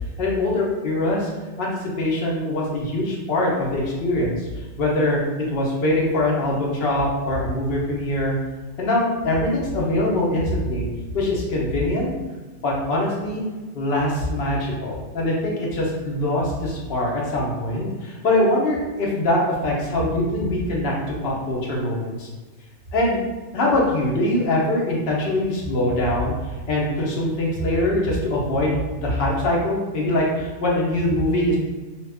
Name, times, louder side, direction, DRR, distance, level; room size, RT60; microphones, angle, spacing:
voice 1, 0.2-1.3 1.6-1.7 2.0-4.5 4.8-8.4 8.8-10.9 11.1-12.1 12.6-13.4 13.7-22.3 22.9-23.2 23.5-26.3 26.7-31.6, left 1 dB, 55° left, -3 dB, 0.9 m, -23 dB
2.8 x 2.4 x 3.4 m, 1.3 s
omnidirectional pair, 1.3 m